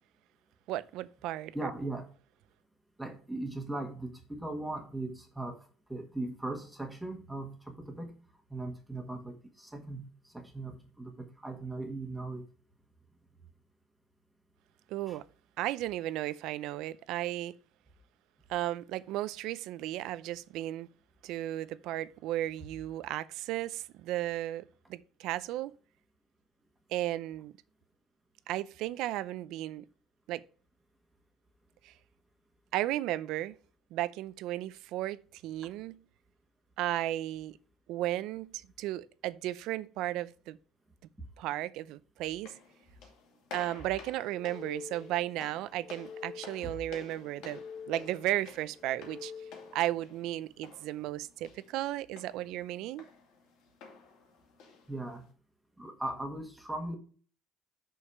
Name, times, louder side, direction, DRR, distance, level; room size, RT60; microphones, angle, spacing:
voice 1, 0.7-1.7 14.9-15.2 15.6-17.5 18.5-20.9 21.2-25.7 26.9-27.5 28.5-29.8 30.3-30.4 31.8-31.9 32.7-33.5 33.9-36.0 36.8-37.6 37.9-40.6 41.4-42.5 43.5-49.3 49.7-53.1, right 14 dB, 70° right, 0.5 m, -35 dB
voice 2, 1.5-2.1 3.0-8.2 8.5-12.4 15.1-15.2 46.6-46.7 54.9-55.3 55.8-57.0, right 2 dB, 5° right, 1.6 m, -39 dB
sound 1, 42.3-55.3, left 5 dB, 70° left, 2.5 m, -52 dB
sound 2, 44.2-45.3 45.7-46.8 47.2-48.3 48.8-49.9, left 6 dB, 30° left, 0.9 m, -47 dB
6.4 x 5.7 x 4.8 m
cardioid pair, 150°, 0 cm